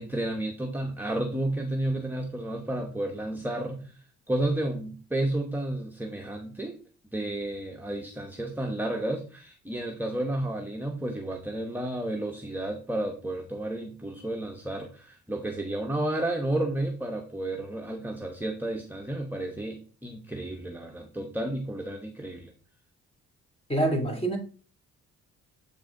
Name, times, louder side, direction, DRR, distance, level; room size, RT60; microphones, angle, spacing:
voice 1, 0.0-6.8 7.1-22.5, right 1 dB, 5° right, 1.0 m, -32 dB
voice 2, 23.7-24.4, right 1 dB, 20° left, 2.6 m, -25 dB
7.9 x 4.8 x 3.7 m
cardioid pair, 90°, 30 cm